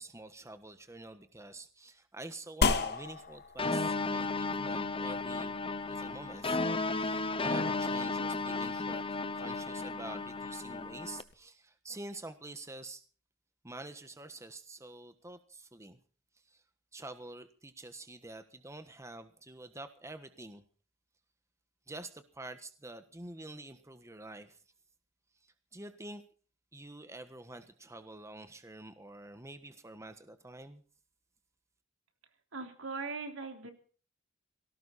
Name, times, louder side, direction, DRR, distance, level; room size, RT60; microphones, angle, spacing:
voice 1, 0.0-6.6 6.9-9.0 9.3-13.0 13.6-16.0 16.5-16.6 16.9-20.6 21.9-24.6 25.4-26.2 26.7-30.8, right 2 dB, 15° right, 9 dB, 1.3 m, -47 dB
sound 1, 2.6-11.3, left 4 dB, 55° left, 1.9 m, -38 dB
sound 2, 3.6-11.2, left 3 dB, 25° left, 1.0 m, -34 dB
voice 2, 32.5-33.7, right 4 dB, 80° right, 5 dB, 3.4 m, -39 dB
19.0 x 17.5 x 4.2 m, 0.41 s
head